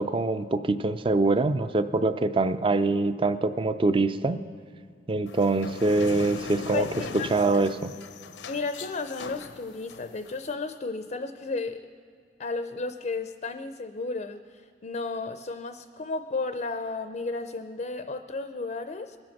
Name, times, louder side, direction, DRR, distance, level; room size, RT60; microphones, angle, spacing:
voice 1, 0.0-4.4 5.1-6.9 7.3-7.9, right 3 dB, 30° right, 12 dB, 0.4 m, -24 dB
sound 1, 5.3-10.5, left 4 dB, 85° left, 0.7 m, -40 dB
voice 2, 6.7-7.3 8.5-11.8 12.4-19.2, left 3 dB, 40° left, 9 dB, 0.5 m, -33 dB
22.0 x 7.7 x 5.9 m, 2.3 s
head